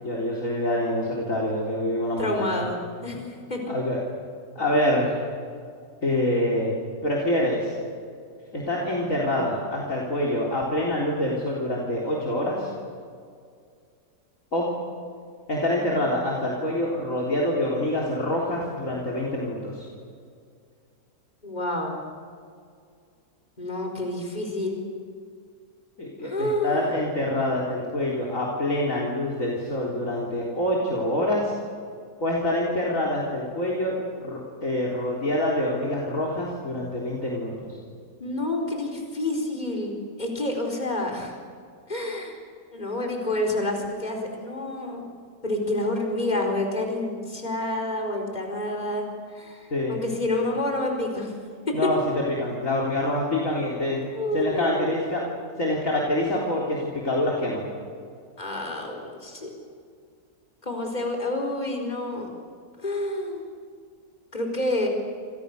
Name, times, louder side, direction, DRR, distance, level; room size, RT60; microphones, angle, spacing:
voice 1, 0.0-2.6 3.7-4.0 4.6-5.3 6.0-6.7 7.0-7.7 8.5-12.7 14.5-14.7 15.5-19.9 26.0-31.5 32.2-37.8 49.7-50.0 51.7-52.0 52.3-54.0 54.3-55.2 55.6-57.7, left 1 dB, 50° left, -2 dB, 4.3 m, -26 dB
voice 2, 2.2-3.6 21.4-22.0 23.6-24.8 26.2-26.9 38.2-41.4 41.9-42.4 42.7-45.1 45.4-51.3 51.7-51.8 54.1-54.9 58.4-59.5 60.6-62.3 62.8-63.4 64.3-64.9, left 1 dB, 25° left, 2 dB, 4.7 m, -28 dB
28.5 x 28.5 x 6.7 m, 2.2 s
omnidirectional pair, 1.8 m